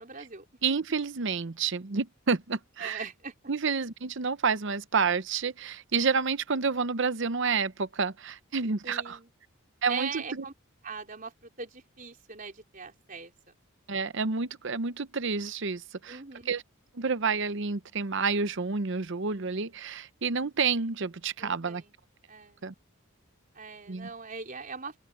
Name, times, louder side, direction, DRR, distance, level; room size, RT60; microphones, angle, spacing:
voice 1, 0.0-0.5 2.8-3.3 8.8-9.3 9.9-10.5 10.8-13.3 16.1-16.5 21.4-21.9 22.3-22.6 23.5-25.0, right 5 dB, 40° right, 4.2 m, -40 dB
voice 2, 0.6-3.0 3.5-9.2 9.8-10.4 13.9-16.2 16.5-16.6 16.9-21.8 22.6-22.7 23.9-24.1, right 5 dB, 55° right, 0.8 m, -29 dB
open air
head